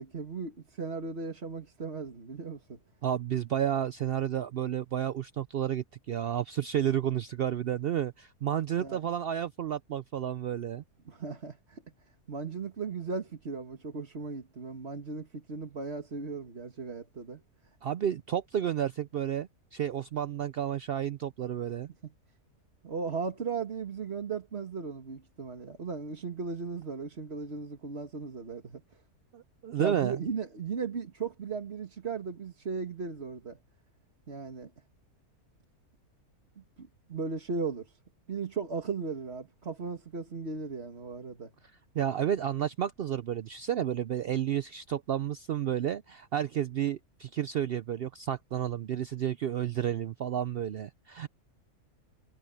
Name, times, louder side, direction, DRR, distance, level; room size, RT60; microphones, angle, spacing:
voice 1, 0.0-2.8 8.8-9.0 11.1-11.8 12.3-17.4 22.0-22.1 22.8-28.8 29.8-33.6 34.3-34.7 36.6-38.0 38.3-41.5, right 4 dB, 45° right, 2.1 m, -37 dB
voice 2, 3.0-10.8 17.8-21.9 29.3-30.2 41.9-51.3, right 10 dB, 85° right, 0.5 m, -31 dB
omnidirectional pair, 1.6 m